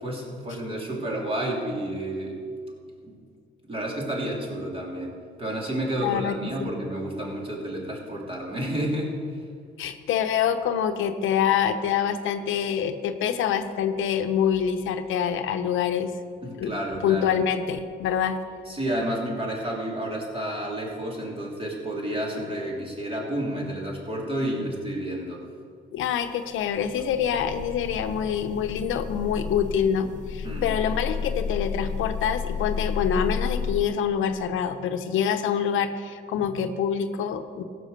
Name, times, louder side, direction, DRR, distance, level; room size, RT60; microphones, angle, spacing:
voice 1, 0.0-2.4 3.0-3.2 3.6-9.1 16.4-17.3 18.7-25.4 30.4-30.7, right 1 dB, 25° right, -2 dB, 3.2 m, -30 dB
voice 2, 6.0-6.7 9.8-16.1 16.6-16.7 17.0-18.4 25.9-37.6, left 8 dB, 85° left, 8 dB, 0.8 m, -26 dB
sound 1, 26.5-33.8, left 6 dB, 40° left, 0.8 m, -32 dB
15.5 x 6.3 x 6.6 m, 2.2 s
cardioid pair, 90°, 20 cm